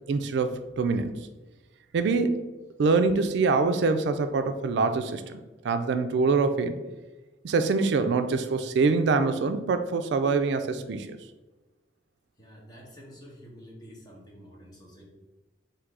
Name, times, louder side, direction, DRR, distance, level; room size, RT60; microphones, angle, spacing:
voice 1, 0.1-1.2 1.9-2.5 2.8-6.8 7.4-11.2, right 4 dB, 65° right, 9 dB, 0.3 m, -25 dB
voice 2, 12.4-15.1, equal, 20° left, -3 dB, 1.1 m, -48 dB
3.8 x 2.7 x 4.6 m, 1.2 s
head